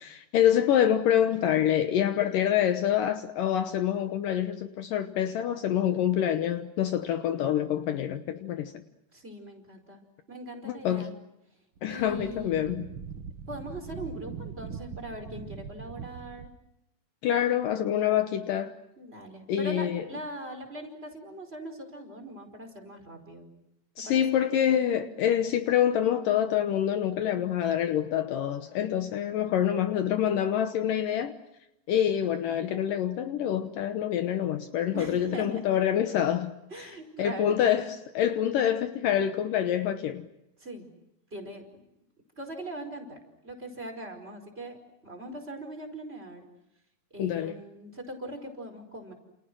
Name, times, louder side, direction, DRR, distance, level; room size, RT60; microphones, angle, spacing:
voice 1, 0.0-8.7 10.6-11.1 11.8-12.9 17.2-18.7 19.5-20.0 24.0-31.3 31.9-36.5 36.8-36.9 37.2-40.3 47.2-47.6, left 10 dB, 70° left, 2.5 m, -26 dB
voice 2, 9.1-10.0 10.3-11.1 11.9-12.8 13.5-16.5 19.0-23.5 24.0-24.2 34.9-35.6 36.7-37.6 40.6-40.9 41.3-41.6 42.4-44.8 45.0-46.5 47.1-49.1, right 1 dB, 15° right, 5.1 m, -41 dB
Wind, 11.8-16.6, right 6 dB, 65° right, 1.4 m, -41 dB
30.0 x 29.0 x 6.2 m
omnidirectional pair, 4.3 m